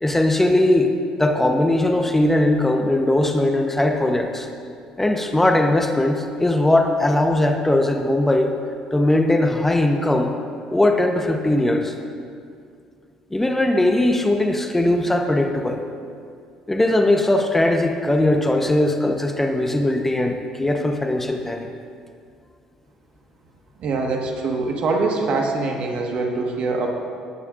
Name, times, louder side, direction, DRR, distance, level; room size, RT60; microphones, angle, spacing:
voice 1, 0.0-0.9 1.2-4.5 5.0-8.6 8.9-10.3 10.7-11.9 13.3-15.8 16.7-21.7, left 1 dB, 10° left, 5 dB, 0.9 m, -19 dB
voice 2, 23.8-26.9, right 3 dB, 55° right, 2 dB, 1.5 m, -23 dB
16.5 x 9.6 x 2.5 m, 2.3 s
hypercardioid pair, 55°, 2 cm